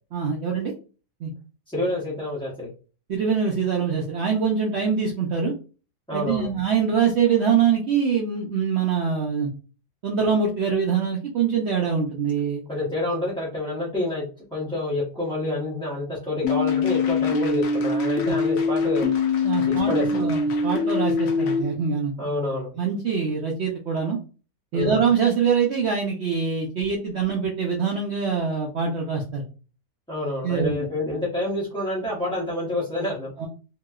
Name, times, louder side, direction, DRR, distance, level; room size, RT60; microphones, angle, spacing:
voice 1, 0.1-0.7 1.2-1.3 3.1-5.5 6.1-9.5 10.0-12.6 18.3-18.4 19.4-22.1 22.8-24.2 24.7-29.5 30.4-30.9 33.4-33.5, right 6 dB, 85° right, -1 dB, 0.5 m, -24 dB
voice 2, 1.7-2.7 6.1-6.5 12.7-14.2 14.5-19.1 19.9-20.3 22.2-22.7 24.7-25.1 30.1-33.5, left 1 dB, 5° left, -8 dB, 0.4 m, -28 dB
sound 1, 16.4-21.6, left 4 dB, 65° left, 0.7 m, -23 dB
2.9 x 2.8 x 2.3 m, 0.35 s
omnidirectional pair, 1.8 m